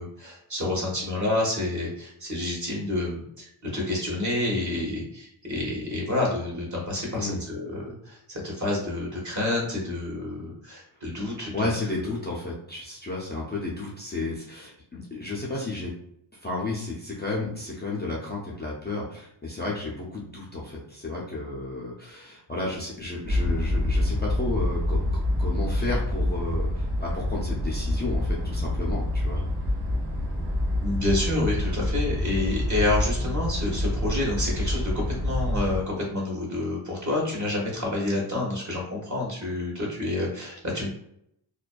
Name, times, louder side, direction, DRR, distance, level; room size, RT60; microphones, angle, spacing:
voice 1, 0.0-11.7 30.8-40.9, left 2 dB, 35° right, -3 dB, 1.0 m, -29 dB
voice 2, 7.1-7.4 11.5-15.9 16.4-29.4, left 2 dB, 20° left, -4 dB, 0.4 m, -32 dB
sound 1, 23.2-35.8, left 1 dB, 60° right, 1.4 m, -27 dB
2.5 x 2.2 x 2.2 m, 0.74 s
wide cardioid pair, 90°, 49 cm